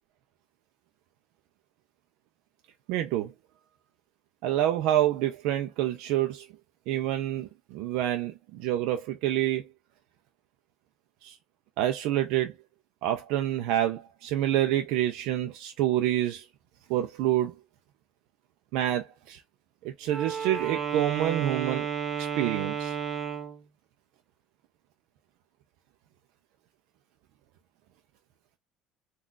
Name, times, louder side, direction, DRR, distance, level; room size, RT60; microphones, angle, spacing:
voice 1, 2.9-3.3 4.4-6.5 6.9-9.6 11.2-11.4 11.8-12.5 13.0-16.4 16.9-17.5 18.7-19.4 19.8-21.9 22.2-22.9, right 12 dB, 75° right, 0.4 m, -27 dB
Wind instrument woodwind instrument, 20.0-23.6, right 7 dB, 35° right, 0.7 m, -32 dB
3.8 x 2.3 x 2.4 m
cardioid pair, 115°, 0 cm